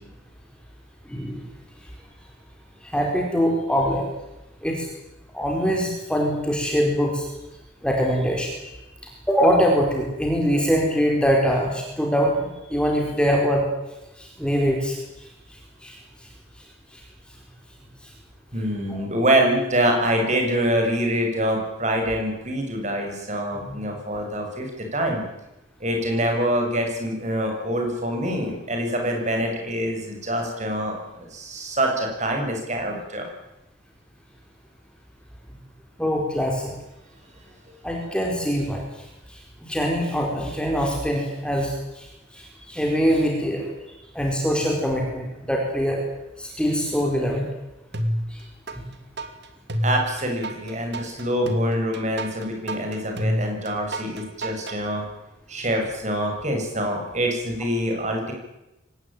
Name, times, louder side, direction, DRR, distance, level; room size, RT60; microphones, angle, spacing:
voice 1, 1.1-1.4 2.8-4.1 4.6-4.9 5.3-7.3 7.8-8.7 9.3-13.6 14.2-15.0 15.8-16.0 18.9-19.0 23.7-23.8 36.0-36.7 37.8-38.8 39.6-42.1 42.3-43.7 44.1-46.1 46.4-47.4 48.3-48.4 48.7-48.8, equal, 5° left, 0 dB, 4.5 m, -23 dB
voice 2, 18.5-25.2 25.8-33.3 49.8-55.0 55.5-58.3, right 1 dB, 35° right, 2 dB, 7.3 m, -25 dB
sound 1, 47.9-48.8 49.2-54.8, equal, 55° right, 2.7 m, -27 dB
24.5 x 19.5 x 9.1 m, 0.94 s
head